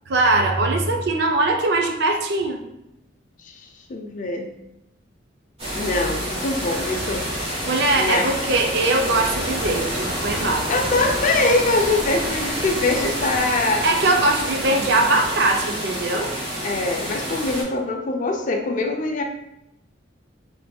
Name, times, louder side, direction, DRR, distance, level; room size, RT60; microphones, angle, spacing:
voice 1, 0.1-2.6 7.7-10.7 13.8-16.3, right 2 dB, 65° right, 3 dB, 0.4 m, -21 dB
voice 2, 3.9-4.5 5.7-7.3 8.0-8.4 10.7-13.9 16.6-19.2, left 2 dB, 45° left, 3 dB, 0.4 m, -23 dB
sound 1, 5.6-17.6, equal, 35° right, 1.4 m, -28 dB
4.2 x 3.2 x 2.2 m, 0.85 s
head